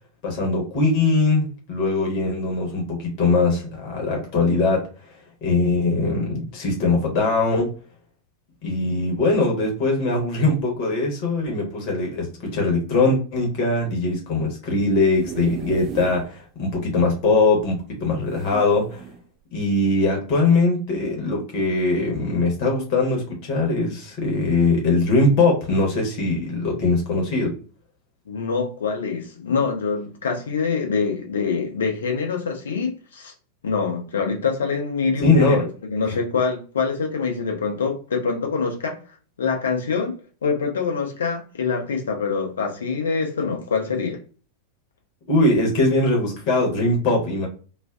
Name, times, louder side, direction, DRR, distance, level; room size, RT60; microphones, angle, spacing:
voice 1, 0.2-4.9 5.4-7.7 8.6-19.0 19.5-27.5 35.2-35.6 45.3-47.5, left 3 dB, 45° left, 0.9 m, -21 dB
sound 1, 14.8-16.3 16.8-16.9 17.1-17.2 18.3-19.2 19.9-20.1, right 7 dB, 30° right, 0.4 m, -36 dB
voice 2, 28.3-33.3 33.6-39.0 39.4-40.2 40.4-44.2, left 5 dB, 65° left, 0.6 m, -25 dB
2.4 x 2.3 x 2.2 m
figure-of-eight pair, 90°, 0 cm